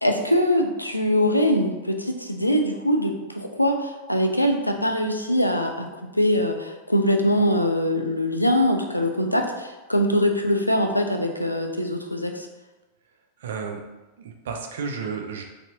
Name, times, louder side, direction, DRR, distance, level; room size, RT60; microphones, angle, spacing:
voice 1, 0.0-5.9 6.1-12.5, equal, 85° left, 4 dB, 0.3 m, -22 dB
voice 2, 13.4-13.9 14.2-15.4, right 5 dB, 60° right, 4 dB, 0.5 m, -32 dB
4.0 x 2.7 x 2.7 m, 1.1 s
figure-of-eight pair, 90°, 0 cm